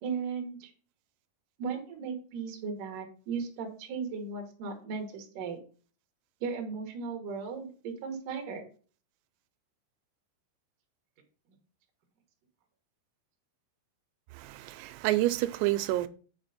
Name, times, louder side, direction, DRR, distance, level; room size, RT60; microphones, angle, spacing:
voice 1, 0.0-0.7 1.6-5.6 6.4-8.6, right 5 dB, 65° right, 2.2 m, -36 dB
voice 2, 14.3-16.1, right 16 dB, 90° right, 3.3 m, -28 dB
8.6 x 5.1 x 4.1 m
omnidirectional pair, 6.0 m